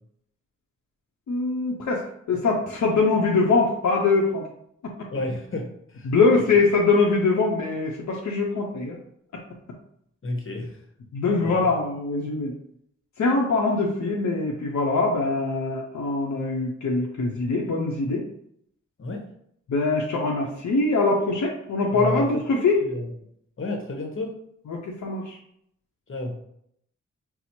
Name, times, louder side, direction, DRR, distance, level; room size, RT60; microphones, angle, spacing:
voice 1, 1.3-4.5 6.1-9.0 9.3-9.4 11.1-12.5 13.2-18.2 19.7-22.8 24.7-25.4, left 3 dB, 70° left, -1 dB, 0.7 m, -23 dB
voice 2, 5.1-6.4 10.2-10.8 11.4-11.7 19.0-19.2 21.9-23.1 23.6-24.4 26.1-26.3, left 2 dB, 45° left, 2 dB, 1.0 m, -32 dB
4.2 x 2.0 x 4.2 m, 0.72 s
cardioid pair, 50°, 30 cm